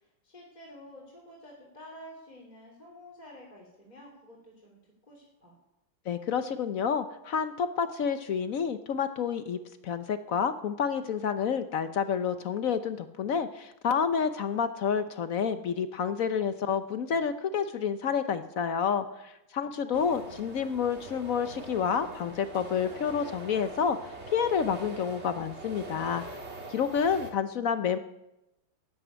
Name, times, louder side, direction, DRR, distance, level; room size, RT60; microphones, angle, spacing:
voice 1, 0.0-5.6 19.6-20.2, equal, 20° left, -3 dB, 3.0 m, -50 dB
voice 2, 6.1-26.2 26.7-28.0, left 7 dB, 65° left, 11 dB, 0.8 m, -29 dB
sound 1, 19.9-27.3, right 2 dB, 35° right, 2.1 m, -43 dB
13.0 x 9.5 x 9.2 m, 0.92 s
omnidirectional pair, 2.3 m